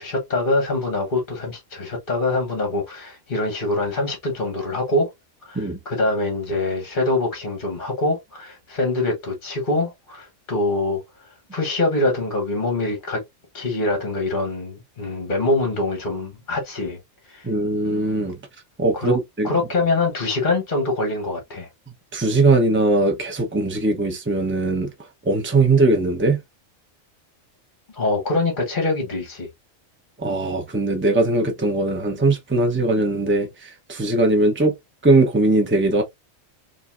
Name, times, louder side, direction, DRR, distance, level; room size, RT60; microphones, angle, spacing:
voice 1, 0.0-5.1 5.4-11.0 11.5-13.2 13.5-17.0 17.3-17.5 18.9-19.2 19.4-21.7 27.9-29.5, left 2 dB, 40° left, 1.3 m, -24 dB
voice 2, 17.4-18.4 18.8-19.5 22.1-24.9 25.2-26.4 30.2-34.7 35.0-36.0, right 2 dB, 10° right, 0.9 m, -20 dB
5.3 x 2.8 x 2.5 m
omnidirectional pair, 1.3 m